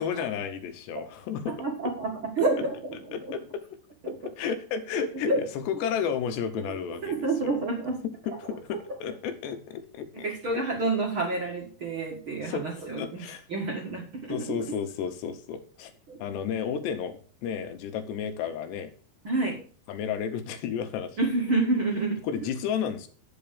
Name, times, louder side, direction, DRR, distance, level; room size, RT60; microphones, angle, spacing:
voice 1, 0.0-1.6 3.1-3.6 4.1-7.6 8.3-10.3 12.5-12.7 13.0-13.5 14.3-15.9 16.2-18.9 19.9-21.2 22.2-23.1, left 7 dB, 75° left, 8 dB, 3.0 m, -32 dB
voice 2, 1.6-3.0 4.0-4.1 5.3-5.4 7.0-8.0 8.3-8.4 10.2-13.2 13.5-14.3 16.1-16.2 19.2-19.6 21.2-22.2, right 3 dB, 45° right, -2 dB, 1.7 m, -28 dB
9.9 x 5.7 x 6.9 m, 0.42 s
omnidirectional pair, 5.1 m